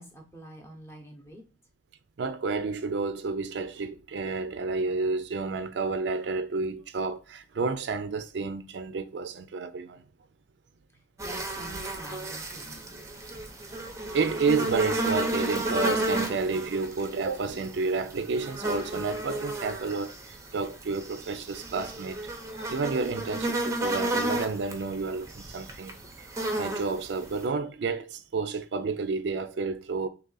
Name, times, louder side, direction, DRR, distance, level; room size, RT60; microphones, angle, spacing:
voice 1, 0.0-1.4 11.2-12.9, right 1 dB, 15° left, 0.8 m, -46 dB
voice 2, 2.2-10.0 14.1-22.2 22.7-26.3 26.6-30.1, right 4 dB, 65° right, 0.4 m, -30 dB
sound 1, 11.2-27.4, right 1 dB, 15° right, 0.6 m, -33 dB
3.7 x 2.9 x 3.8 m
head